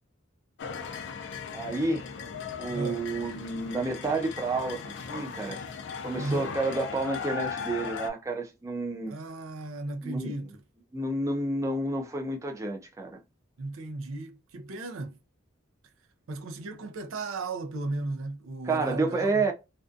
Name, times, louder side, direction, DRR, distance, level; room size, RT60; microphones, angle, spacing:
sound 1, 0.6-8.1, left 6 dB, 60° left, 0.4 m, -38 dB
voice 1, 1.5-2.1 2.6-5.6 6.0-9.1 10.0-10.3 10.9-13.2 18.6-19.5, right 2 dB, 15° right, 0.4 m, -30 dB
voice 2, 2.7-3.1 6.1-6.6 9.1-10.6 13.6-15.2 16.3-19.5, right 2 dB, 75° right, 0.5 m, -35 dB
2.5 x 2.2 x 2.4 m
head